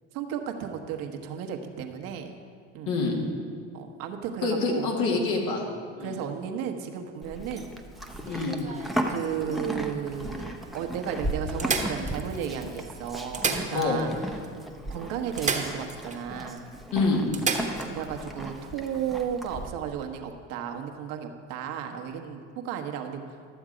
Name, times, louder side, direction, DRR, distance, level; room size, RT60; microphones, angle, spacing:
voice 1, 0.1-2.3 2.7-3.0 3.7-5.2 6.0-7.8 9.1-14.1 14.9-16.6 17.9-23.2, right 8 dB, 65° right, 4 dB, 1.2 m, -34 dB
voice 2, 2.9-3.2 4.4-5.6 6.0-6.2 8.3-8.6 13.7-14.0 16.9-17.3, left 3 dB, 70° left, 0 dB, 2.1 m, -26 dB
Livestock farm animals working animals, 7.2-19.7, right 1 dB, ahead, 0.8 m, -36 dB
sound 1, 8.1-9.7 10.4-10.5 10.7-10.8 11.6-12.6 13.2-14.2 14.4-14.5 15.4-16.2 16.6-16.7 17.3-17.9 19.9-20.0, right 4 dB, 20° right, 1.2 m, -32 dB
12.5 x 7.2 x 5.0 m, 2.2 s
hypercardioid pair, 90°, 37 cm